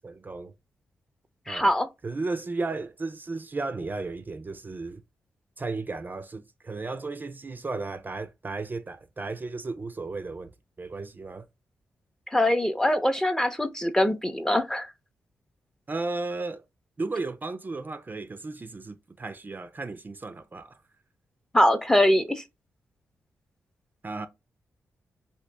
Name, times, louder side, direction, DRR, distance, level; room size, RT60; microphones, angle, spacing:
voice 1, 0.0-0.5 1.5-1.7 2.0-5.0 5.6-10.5 10.8-11.5 15.9-16.6 17.0-20.8 24.0-24.3, right 3 dB, 35° right, 0.4 m, -34 dB
voice 2, 1.5-1.9 12.3-14.9 21.5-22.4, left 1 dB, 10° left, 0.6 m, -23 dB
2.9 x 2.8 x 3.3 m
cardioid pair, 55°, 6 cm